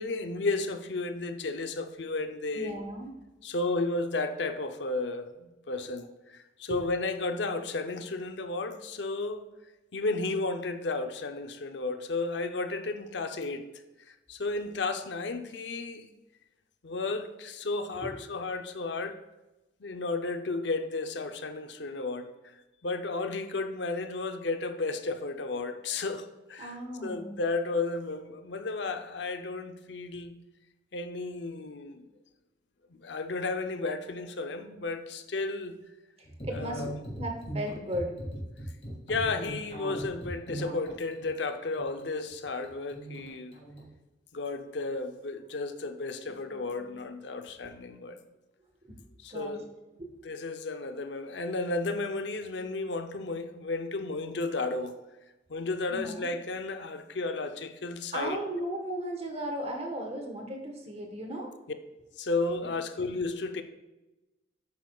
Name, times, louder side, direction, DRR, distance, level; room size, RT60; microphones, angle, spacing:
voice 1, 0.0-2.8 3.4-9.5 9.9-13.7 14.1-16.1 16.8-19.2 19.8-22.3 22.8-30.4 30.9-32.1 32.9-35.8 36.5-37.0 39.1-43.6 44.3-48.2 49.2-49.7 50.2-55.0 55.5-58.4 62.2-63.6, left 3 dB, 70° left, 0.7 m, -33 dB
voice 2, 2.5-3.1 6.7-6.8 17.9-18.1 26.6-27.3 36.2-38.1 46.3-46.4 46.8-46.9 48.8-49.0 49.3-49.6 50.0-50.1 55.9-56.3 58.1-61.5, right 1 dB, 35° right, 1.3 m, -36 dB
sound 1, 36.3-43.9, right 1 dB, 35° left, 2.1 m, -39 dB
11.0 x 8.2 x 2.4 m
head